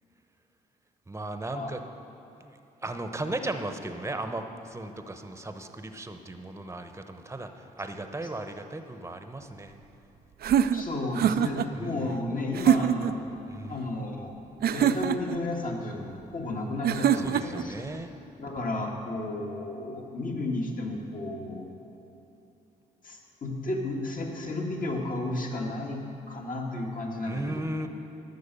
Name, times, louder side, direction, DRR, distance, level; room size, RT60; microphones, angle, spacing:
voice 1, 1.1-1.8 2.4-2.6 2.8-9.8 11.7-12.1 13.5-13.8 17.1-18.2 27.2-27.9, right 2 dB, 15° right, 7 dB, 1.0 m, -36 dB
sound 1, 10.4-11.7 12.5-13.2 14.6-15.4 16.8-17.6, right 9 dB, 55° right, 0.4 m, -24 dB
voice 2, 10.7-13.3 13.7-14.3 14.7-17.7 18.4-21.7 23.0-27.9, left 2 dB, 45° left, 0 dB, 1.9 m, -33 dB
11.0 x 6.7 x 6.8 m, 3.0 s
hypercardioid pair, 45°, 19 cm